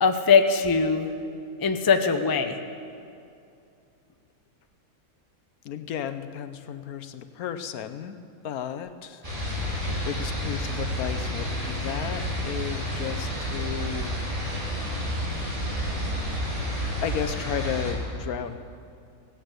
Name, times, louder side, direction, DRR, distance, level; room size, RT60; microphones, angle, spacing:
voice 1, 0.0-1.1 1.6-2.6 9.9-10.0, left 5 dB, 25° left, 7 dB, 0.4 m, -21 dB
voice 2, 5.6-8.2 8.4-14.1 15.4-15.6 17.0-18.6, left 9 dB, 75° left, 10 dB, 1.2 m, -34 dB
sound 1, 9.2-17.9, equal, 35° right, 3.5 m, -30 dB
16.0 x 10.0 x 8.1 m, 2.5 s
omnidirectional pair, 1.6 m